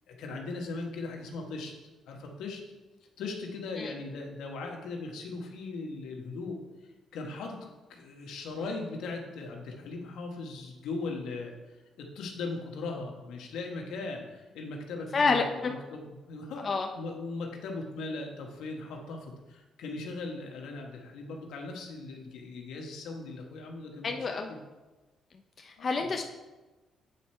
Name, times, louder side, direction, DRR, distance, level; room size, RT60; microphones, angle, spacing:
voice 1, 0.1-1.7 2.0-2.6 3.2-6.6 7.1-16.7 16.9-24.6 25.8-26.1, left 3 dB, 85° left, 1 dB, 1.2 m, -39 dB
voice 2, 15.1-15.7 16.6-16.9 24.0-24.5 25.6-26.2, left 4 dB, 45° left, 3 dB, 0.5 m, -28 dB
8.3 x 4.3 x 4.5 m, 1.2 s
cardioid pair, 90°, 0 cm